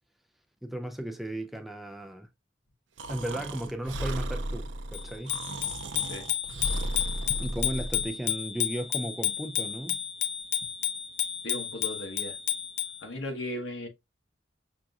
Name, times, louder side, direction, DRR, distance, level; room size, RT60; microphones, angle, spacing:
voice 1, 0.6-2.3 3.1-5.4 7.4-10.0, right 1 dB, ahead, 0.3 m, -35 dB
Breathing, 3.0-8.1, right 1 dB, 85° right, 0.6 m, -35 dB
Bicycle bell, 4.9-13.0, left 10 dB, 70° left, 0.7 m, -32 dB
voice 2, 11.4-12.4 13.0-13.9, left 1 dB, 90° left, 1.1 m, -36 dB
5.8 x 2.6 x 2.3 m
head